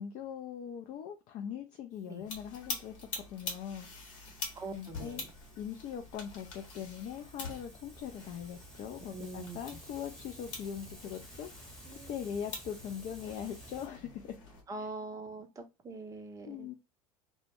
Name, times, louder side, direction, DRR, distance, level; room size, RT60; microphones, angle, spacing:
voice 1, 0.0-3.9 4.7-5.2 5.6-11.7 12.1-14.3 16.5-16.7, left 8 dB, 40° left, 0.4 m, -41 dB
Hiss, 1.9-13.9, right 1 dB, 5° left, 0.9 m, -55 dB
sound 1, 2.2-14.6, left 3 dB, 65° left, 0.9 m, -46 dB
voice 2, 4.5-5.3 9.1-9.6 11.8-12.2 14.7-16.7, right 3 dB, 20° right, 0.5 m, -44 dB
2.1 x 2.0 x 2.9 m
figure-of-eight pair, 75°, 18 cm